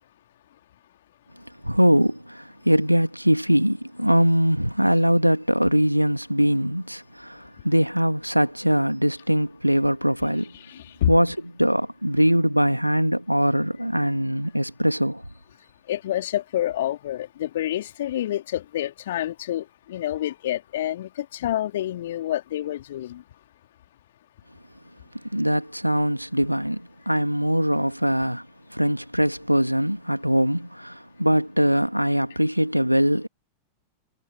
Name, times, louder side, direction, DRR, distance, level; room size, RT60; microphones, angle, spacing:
voice 1, 1.6-10.5 11.1-15.2 25.3-28.5 28.7-33.3, equal, 90° right, 2.2 m, -22 dB
voice 2, 10.5-11.1 15.9-23.2, left 12 dB, 60° left, 3.4 m, -28 dB
figure-of-eight pair, 90°, 0 cm